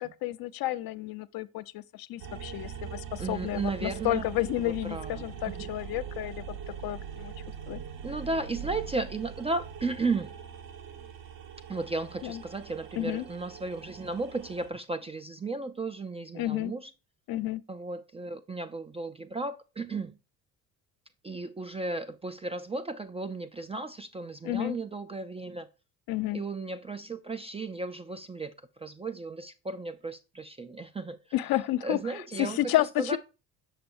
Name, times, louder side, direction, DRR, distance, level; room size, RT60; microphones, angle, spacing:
voice 1, 0.0-6.6 6.8-7.3 7.7-7.8 12.2-12.4 13.0-13.2 16.3-16.7 17.3-17.6 24.4-24.8 26.1-26.4 31.3-33.2, left 15 dB, 50° left, 0.5 m, -31 dB
sound 1, 2.2-14.7, right 8 dB, 60° right, 1.2 m, -42 dB
voice 2, 3.2-4.3 4.6-5.7 8.0-10.3 11.7-16.9 17.7-20.1 21.2-25.7 26.3-31.2 31.8-33.2, right 3 dB, 15° right, 0.4 m, -35 dB
6.7 x 5.8 x 2.6 m
hypercardioid pair, 55°, 47 cm